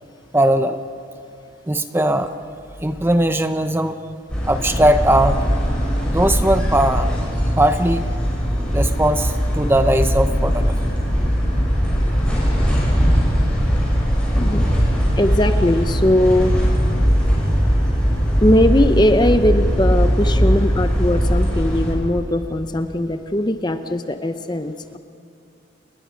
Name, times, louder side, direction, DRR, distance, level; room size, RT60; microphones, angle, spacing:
voice 1, 0.3-0.8 1.7-2.3 2.8-4.0 4.4-5.4 6.0-7.1 7.6-8.1 8.7-10.8 11.6-11.7, right 1 dB, 10° right, 9 dB, 0.8 m, -19 dB
sound 1, 4.3-21.9, equal, 5° left, 6.6 m, -19 dB
voice 2, 14.3-14.7 15.2-16.6 18.4-25.0, left 1 dB, 20° left, 9 dB, 0.7 m, -19 dB
30.0 x 21.0 x 5.2 m, 2.6 s
head